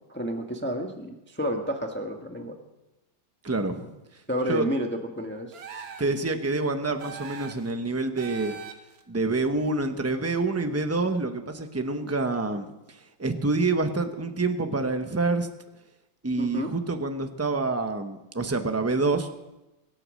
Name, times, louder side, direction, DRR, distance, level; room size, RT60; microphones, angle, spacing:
voice 1, 0.1-2.6 4.3-5.6 16.4-16.7, equal, 5° left, 3 dB, 1.0 m, -30 dB
voice 2, 3.4-4.2 4.5-4.7 6.0-8.6 9.1-15.5 16.2-19.3, right 3 dB, 15° right, 7 dB, 0.5 m, -27 dB
sound 1, 5.5-6.2 7.0-7.7 8.2-9.0, right 7 dB, 55° right, 1.5 m, -41 dB
24.0 x 8.4 x 6.4 m, 1.0 s
omnidirectional pair, 2.1 m